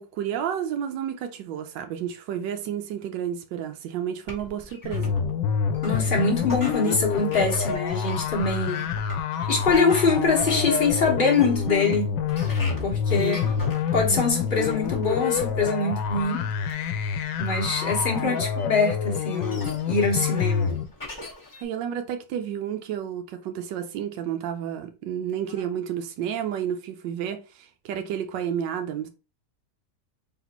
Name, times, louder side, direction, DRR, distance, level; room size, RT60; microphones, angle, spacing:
voice 1, 0.0-5.1 13.1-13.4 18.2-18.5 21.6-29.1, right 9 dB, 90° right, 1.3 m, -31 dB
sound 1, 4.3-21.6, left 2 dB, 15° left, 0.9 m, -41 dB
sound 2, 4.8-20.8, left 6 dB, 90° left, 1.3 m, -27 dB
voice 2, 5.8-8.8 9.5-12.1 12.8-13.4 13.9-16.5 17.4-20.7, left 4 dB, 35° left, 1.2 m, -24 dB
4.0 x 3.4 x 2.9 m
omnidirectional pair, 1.9 m